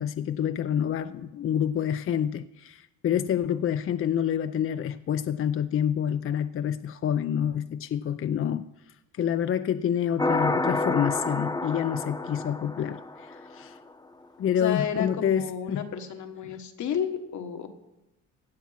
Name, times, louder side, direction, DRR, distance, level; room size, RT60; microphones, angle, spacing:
voice 1, 0.0-13.8 14.4-15.9 16.4-16.5, left 9 dB, 45° left, 11 dB, 0.5 m, -28 dB
sound 1, 10.2-13.6, left 2 dB, 15° left, 0.8 m, -29 dB
voice 2, 14.5-17.7, left 8 dB, 70° left, 6 dB, 1.5 m, -31 dB
16.0 x 8.8 x 5.8 m, 0.95 s
cardioid pair, 90°, 30 cm